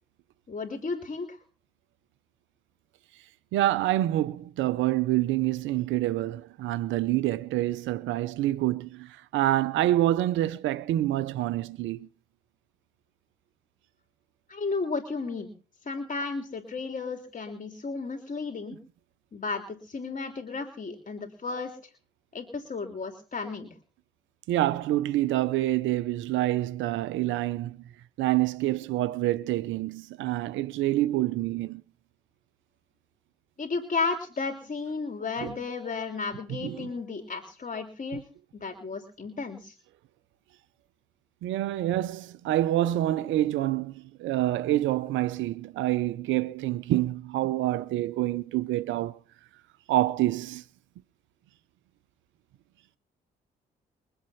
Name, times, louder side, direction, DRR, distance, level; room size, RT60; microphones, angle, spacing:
voice 1, 0.5-1.4 14.5-15.5 15.8-18.8 19.3-21.8 22.3-23.7 33.6-38.2 38.5-39.7, left 4 dB, 40° left, 3.3 m, -33 dB
voice 2, 3.5-12.0 24.5-27.8 28.2-31.8 35.4-35.5 36.6-36.9 41.4-43.9 44.2-49.2 49.9-50.6, right 15 dB, 80° right, 0.7 m, -27 dB
23.5 x 8.2 x 5.7 m
supercardioid pair, 55°, 19 cm